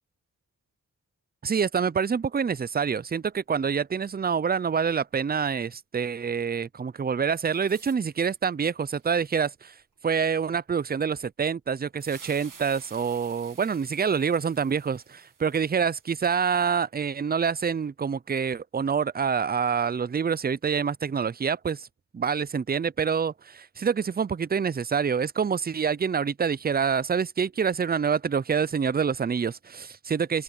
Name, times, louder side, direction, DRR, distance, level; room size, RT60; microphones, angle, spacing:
voice 1, 1.4-9.7 10.0-21.9 22.1-30.4, right 6 dB, 25° right, 0.5 m, -26 dB
sound 1, 2.1-2.3 2.6-2.7 3.1-3.6 7.3-8.4 8.9-9.3 9.8-9.9 11.7-11.8 12.0-16.4, right 6 dB, 65° right, 2.0 m, -51 dB
open air
cardioid pair, 55°, 35 cm